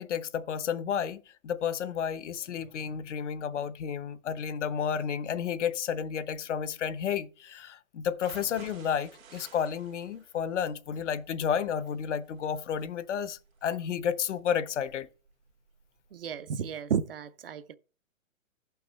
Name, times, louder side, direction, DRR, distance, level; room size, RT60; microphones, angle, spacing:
voice 1, 0.0-15.1, left 8 dB, 60° left, 0.8 m, -31 dB
sound 1, 8.1-16.1 16.5-16.6 17.0-17.1, right 7 dB, 85° right, 2.0 m, -55 dB
voice 2, 16.1-17.8, right 7 dB, 45° right, 0.5 m, -32 dB
15.0 x 5.8 x 3.1 m
hypercardioid pair, 175°, 40 cm